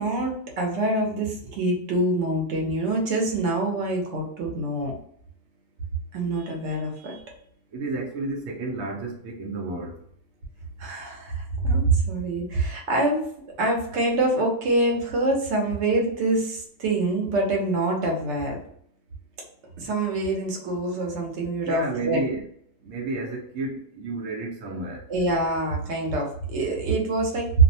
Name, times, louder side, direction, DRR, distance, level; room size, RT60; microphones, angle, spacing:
voice 1, 0.0-4.9 6.1-7.2 10.8-13.3 13.6-18.6 19.8-22.2 25.1-27.6, right 2 dB, 70° right, 0 dB, 1.0 m, -25 dB
voice 2, 7.7-10.0 21.7-22.5 22.8-25.0, right 2 dB, 90° right, -1 dB, 1.0 m, -31 dB
2.5 x 2.1 x 2.6 m, 0.66 s
omnidirectional pair, 1.3 m